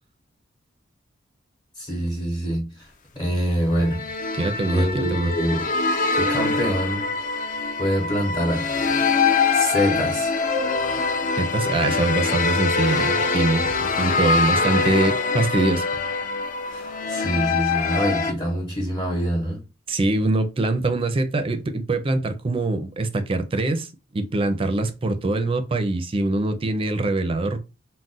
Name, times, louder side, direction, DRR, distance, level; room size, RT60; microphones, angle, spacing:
voice 1, 1.8-2.9 3.1-4.1 4.7-5.7 6.1-7.0 7.8-8.7 9.5-10.5 16.7-19.6, equal, 25° left, 0.8 m, -25 dB
sound 1, 3.7-18.3, left 4 dB, 40° left, 0.4 m, -24 dB
voice 2, 4.4-5.3 11.4-15.9 19.9-23.9 24.1-27.6, right 2 dB, 30° right, 0.4 m, -23 dB
2.4 x 2.1 x 3.8 m
head